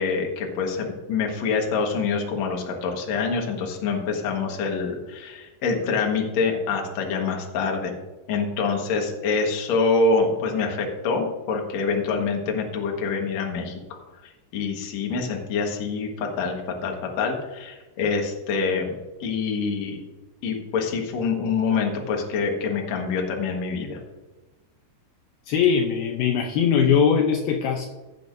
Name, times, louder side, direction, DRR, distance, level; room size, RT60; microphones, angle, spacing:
voice 1, 0.0-7.9 8.3-13.8 14.2-18.9 19.2-20.0 20.4-24.0, left 4 dB, 55° left, 1 dB, 2.1 m, -26 dB
voice 2, 25.5-27.9, left 7 dB, 75° left, 2 dB, 2.5 m, -21 dB
15.0 x 8.4 x 2.7 m, 1.2 s
omnidirectional pair, 4.8 m